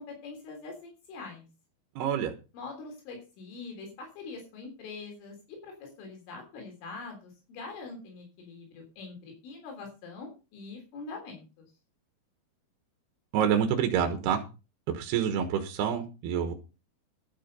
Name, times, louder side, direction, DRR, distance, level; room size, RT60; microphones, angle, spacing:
voice 1, 0.0-1.5 2.5-11.7, left 4 dB, 85° left, 2 dB, 6.0 m, -44 dB
voice 2, 2.0-2.3 13.3-14.4 14.9-16.5, right 8 dB, 65° right, 5 dB, 3.0 m, -27 dB
12.5 x 8.5 x 5.4 m, 0.31 s
omnidirectional pair, 5.6 m